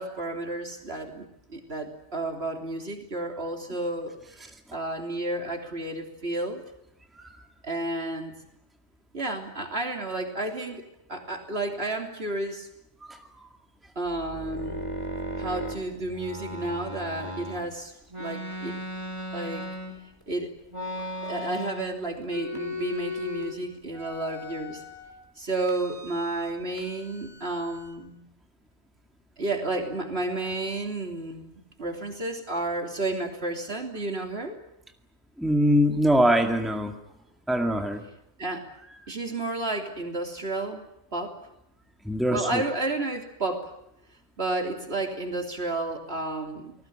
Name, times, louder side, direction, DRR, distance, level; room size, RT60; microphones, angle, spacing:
voice 1, 0.0-6.6 7.6-8.3 9.1-12.7 14.0-14.8 15.4-17.9 18.2-18.8 19.3-19.7 20.3-20.5 21.2-24.8 25.4-28.3 29.4-34.6 38.4-38.7 39.1-40.9 41.1-41.4 42.3-43.7 44.4-46.8, right 2 dB, 65° right, 3 dB, 3.5 m, -31 dB
sound 1, 14.1-17.6 18.1-20.2 20.7-22.0 22.2-23.6 23.9-25.1 25.6-26.5 26.8-28.0, left 1 dB, 25° right, 4.5 m, -37 dB
voice 2, 35.4-36.9 37.5-38.0 42.0-42.6, equal, ahead, 4 dB, 2.0 m, -23 dB
30.0 x 19.5 x 8.8 m, 0.82 s
omnidirectional pair, 1.1 m